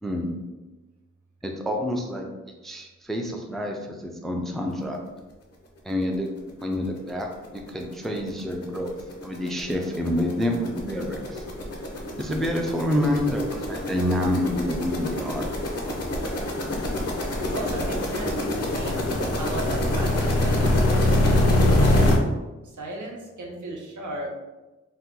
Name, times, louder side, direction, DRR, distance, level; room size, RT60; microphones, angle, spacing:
voice 1, 0.0-0.3 1.4-2.3 2.6-5.0 5.8-6.3 6.6-9.0 9.2-11.4 12.2-15.5, left 1 dB, ahead, 2 dB, 0.3 m, -28 dB
sound 1, 6.7-6.8 7.2-7.3 7.6-22.2, left 1 dB, 55° left, 0.6 m, -24 dB
voice 2, 17.4-19.1 19.4-22.1 22.6-24.3, right 2 dB, 90° right, -1 dB, 0.7 m, -36 dB
2.7 x 2.2 x 3.5 m, 1.1 s
wide cardioid pair, 115°, 29 cm